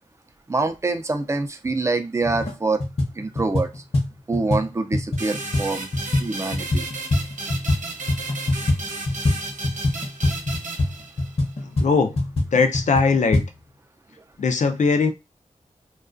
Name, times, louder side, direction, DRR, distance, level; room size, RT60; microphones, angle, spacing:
voice 1, 0.5-2.8 3.2-3.8 4.3-5.9 6.2-6.9, right 3 dB, 20° right, 0.3 m, -25 dB
sound 1, 1.7-1.8 2.2-2.5 2.8-7.8 8.1-13.5, left 2 dB, 50° left, 0.8 m, -24 dB
sound 2, 5.2-11.5, right 3 dB, 70° right, 0.7 m, -34 dB
voice 2, 11.6-12.2 12.5-13.5 14.4-15.1, left 4 dB, 65° left, 0.4 m, -20 dB
2.3 x 2.2 x 2.4 m
wide cardioid pair, 85°, 13 cm